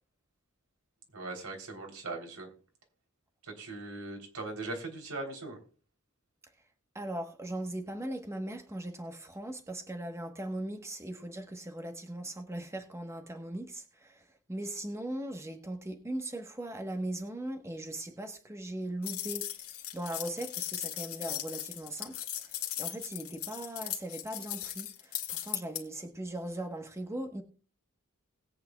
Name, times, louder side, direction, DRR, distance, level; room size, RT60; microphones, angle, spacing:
voice 1, 1.1-2.5 3.4-5.6, right 2 dB, 80° right, 3.4 m, -40 dB
voice 2, 6.9-27.4, right 1 dB, 15° right, 1.2 m, -39 dB
sound 1, 19.0-25.8, left 12 dB, 70° left, 1.9 m, -38 dB
20.0 x 8.7 x 2.3 m
head